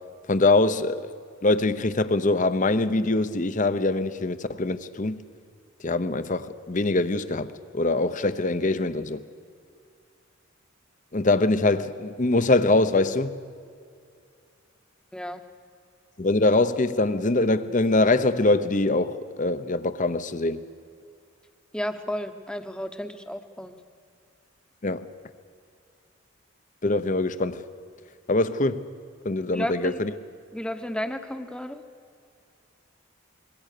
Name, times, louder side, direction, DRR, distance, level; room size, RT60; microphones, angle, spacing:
voice 1, 0.3-1.1 1.4-5.2 5.8-9.2 11.1-13.4 16.2-20.6 24.8-25.1 26.8-27.6 28.3-28.9 29.2-30.1, left 2 dB, 40° left, 0.8 m, -23 dB
voice 2, 21.7-23.7 29.5-30.0 30.5-31.8, equal, 5° left, 1.0 m, -32 dB
26.0 x 22.5 x 6.7 m
head